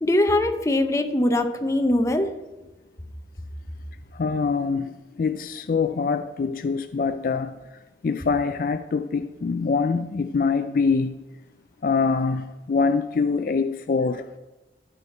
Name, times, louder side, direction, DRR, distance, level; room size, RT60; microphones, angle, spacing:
voice 1, 0.0-2.3, left 1 dB, 15° left, 0.7 m, -21 dB
voice 2, 4.1-7.6 8.0-11.2 11.8-14.4, left 4 dB, 50° left, 0.3 m, -24 dB
12.5 x 5.8 x 4.4 m
head